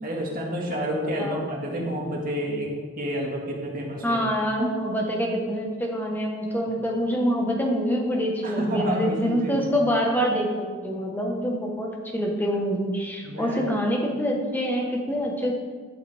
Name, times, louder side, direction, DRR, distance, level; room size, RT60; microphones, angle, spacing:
voice 1, 0.0-4.2 4.6-4.7 8.4-9.6 13.2-13.6, equal, 45° right, -2 dB, 1.9 m, -29 dB
voice 2, 4.0-15.5, equal, 10° left, -1 dB, 1.3 m, -26 dB
12.5 x 7.1 x 3.6 m, 1.5 s
head